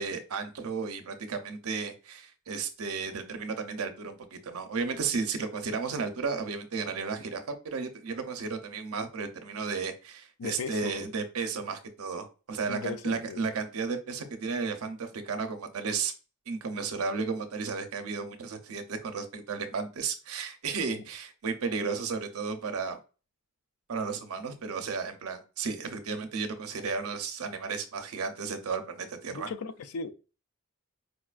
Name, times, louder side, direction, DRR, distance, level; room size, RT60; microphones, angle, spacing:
voice 1, 0.0-16.1 16.5-23.0 23.9-29.5, right 5 dB, 85° right, 0.6 m, -33 dB
voice 2, 10.4-11.1 12.7-13.4 29.3-30.1, left 4 dB, 85° left, 0.4 m, -37 dB
4.8 x 2.3 x 2.3 m
head